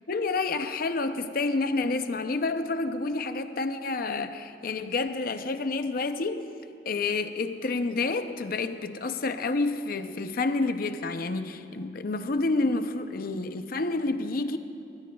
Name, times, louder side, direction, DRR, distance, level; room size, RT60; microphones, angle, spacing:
voice 1, 0.1-6.5 6.9-14.6, left 3 dB, 50° left, 0.6 m, -29 dB
21.0 x 19.5 x 2.3 m
head